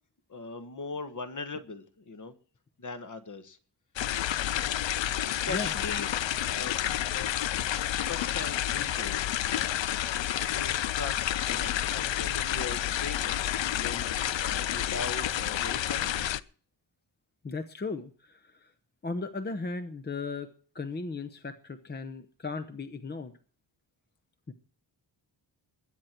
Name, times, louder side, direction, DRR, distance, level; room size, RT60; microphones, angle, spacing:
voice 1, 0.3-2.3 2.8-3.6 5.2-6.1 6.5-6.8 7.0-7.3 8.0-9.8 10.5-16.3, left 4 dB, 45° left, 9 dB, 1.5 m, -40 dB
sound 1, 4.0-16.4, left 11 dB, 85° left, 0.7 m, -30 dB
voice 2, 17.4-18.7 19.0-20.5 20.7-23.3 24.5-24.6, left 3 dB, 25° left, 9 dB, 0.8 m, -36 dB
21.5 x 9.2 x 4.5 m, 0.43 s
wide cardioid pair, 160°, 43 cm